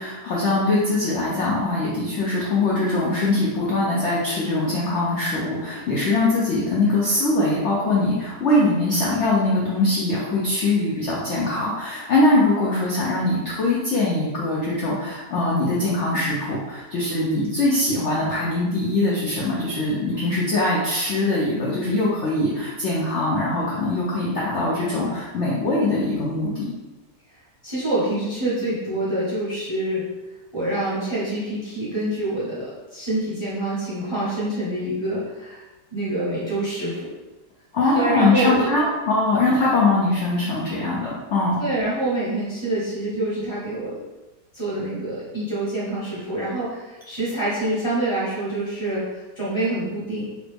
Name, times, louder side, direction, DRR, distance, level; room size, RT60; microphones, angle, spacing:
voice 1, 0.0-26.6 37.7-41.6, left 2 dB, 65° left, -6 dB, 0.7 m, -22 dB
voice 2, 27.6-30.1 30.5-35.6 35.9-37.1 37.8-38.7 41.6-44.0 44.5-50.2, right 1 dB, 25° right, -10 dB, 0.6 m, -26 dB
3.0 x 2.5 x 3.3 m, 1.1 s
omnidirectional pair, 1.8 m